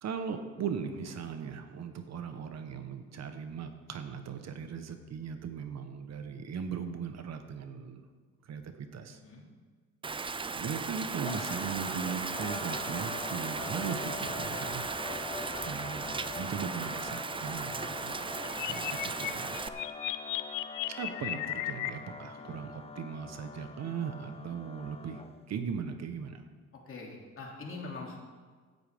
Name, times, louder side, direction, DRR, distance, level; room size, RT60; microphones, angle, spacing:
voice 1, 0.0-8.0 8.4-9.2 10.6-14.9 15.6-18.3 18.7-19.6 21.0-26.4, right 6 dB, 60° right, 7 dB, 1.1 m, -38 dB
Rain, 10.0-19.7, right 4 dB, 15° right, 0.4 m, -37 dB
sound 1, 11.3-25.5, left 4 dB, 20° left, 0.7 m, -43 dB
voice 2, 18.4-18.7 22.4-22.6 26.9-28.2, left 3 dB, 45° left, -1 dB, 2.9 m, -44 dB
sound 2, 18.5-21.9, left 14 dB, 85° left, 0.6 m, -35 dB
16.5 x 9.3 x 3.6 m, 1.5 s
cardioid pair, 90°, 30 cm